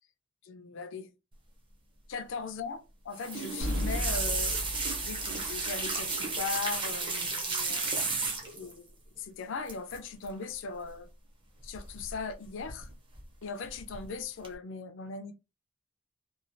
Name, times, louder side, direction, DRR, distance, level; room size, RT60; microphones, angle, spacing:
voice 1, 0.4-1.1 2.1-4.6 5.0-8.3 8.5-11.1 11.6-12.9 13.4-15.3, left 5 dB, 60° left, 0.4 m, -39 dB
sound 1, 3.1-8.7 9.7-10.0 10.2-10.6 11.7-12.3 12.6-13.2 13.7-14.0 14.4-14.5, right 3 dB, 25° right, 0.6 m, -33 dB
sound 2, 3.6-6.3, left 1 dB, 70° right, 1.2 m, -35 dB
3.0 x 2.3 x 2.5 m
head